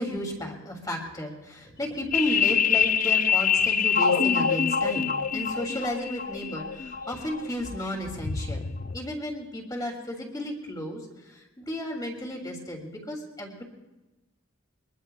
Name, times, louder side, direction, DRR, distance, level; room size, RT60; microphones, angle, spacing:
voice 1, 0.0-8.7 8.9-13.6, left 1 dB, 15° left, 1 dB, 2.7 m, -33 dB
sound 1, 2.1-9.0, left 6 dB, 40° left, 0.5 m, -25 dB
22.5 x 22.5 x 2.3 m, 1.1 s
head